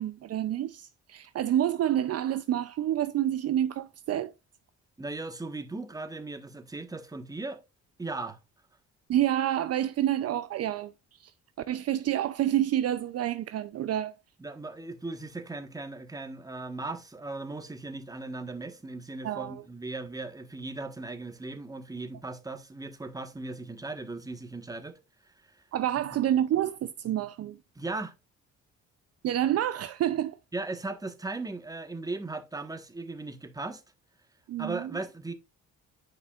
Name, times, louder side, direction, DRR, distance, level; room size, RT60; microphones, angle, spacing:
voice 1, 0.0-4.3 9.1-10.9 11.2-11.3 11.7-14.2 19.2-19.6 25.7-27.6 29.2-30.4 34.5-34.9, right 11 dB, 55° right, 0.5 m, -28 dB
voice 2, 5.0-7.6 8.0-8.4 14.4-25.6 26.0-26.1 27.7-28.1 30.5-33.8 34.6-35.3, right 3 dB, 10° right, 1.2 m, -38 dB
9.8 x 5.4 x 2.4 m
cardioid pair, 90°, 30 cm